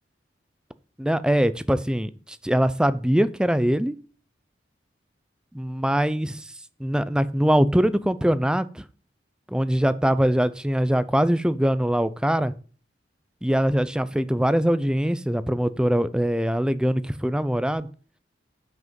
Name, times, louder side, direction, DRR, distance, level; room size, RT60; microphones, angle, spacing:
voice 1, 1.0-3.9 5.5-6.5 6.8-8.8 9.5-12.5 13.4-17.9, equal, 5° right, 14 dB, 0.4 m, -22 dB
7.8 x 6.0 x 5.2 m, 0.39 s
head